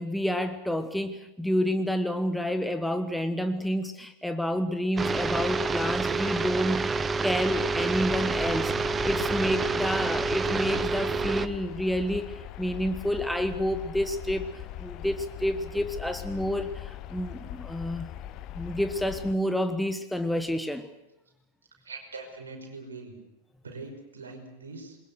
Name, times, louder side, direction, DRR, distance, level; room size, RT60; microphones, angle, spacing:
voice 1, 0.0-18.1 18.5-20.9, equal, ahead, 9 dB, 1.2 m, -29 dB
sound 1, 5.0-11.5, right 4 dB, 15° right, 0.9 m, -28 dB
sound 2, 6.7-19.3, left 12 dB, 35° left, 1.2 m, -41 dB
voice 2, 21.8-23.2 23.6-25.0, right 3 dB, 70° right, 4 dB, 5.4 m, -42 dB
27.5 x 21.5 x 6.5 m, 0.96 s
figure-of-eight pair, 90°, 0 cm